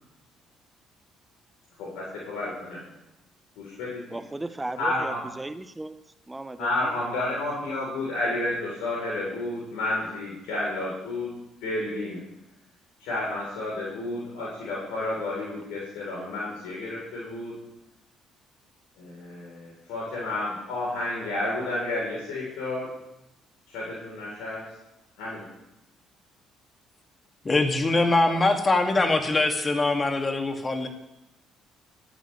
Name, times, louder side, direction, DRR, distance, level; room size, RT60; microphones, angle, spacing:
voice 1, 1.8-2.8 3.6-4.0 4.8-5.2 6.6-11.3 11.6-12.2 13.0-17.6 19.0-22.9 23.7-24.7 25.2-25.5 27.9-28.0 28.3-28.4, left 2 dB, 70° left, -5 dB, 3.7 m, -31 dB
voice 2, 4.1-6.0 6.3-7.0, right 2 dB, 15° right, 11 dB, 1.0 m, -36 dB
voice 3, 27.4-30.9, left 2 dB, 30° left, 5 dB, 2.2 m, -23 dB
25.5 x 9.4 x 3.3 m, 0.91 s
hypercardioid pair, 50°, 0 cm